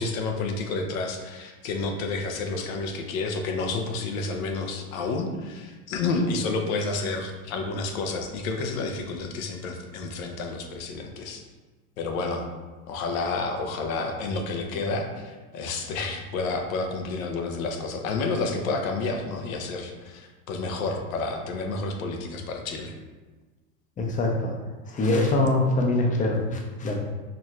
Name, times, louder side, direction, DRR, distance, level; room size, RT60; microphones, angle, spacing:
voice 1, 0.0-11.4 12.0-12.4 12.9-22.9, left 3 dB, 75° left, 4 dB, 0.8 m, -30 dB
voice 2, 24.0-24.5 24.9-27.0, left 2 dB, 20° left, 1 dB, 0.6 m, -23 dB
4.8 x 3.1 x 2.4 m, 1.3 s
supercardioid pair, 115°, 42 cm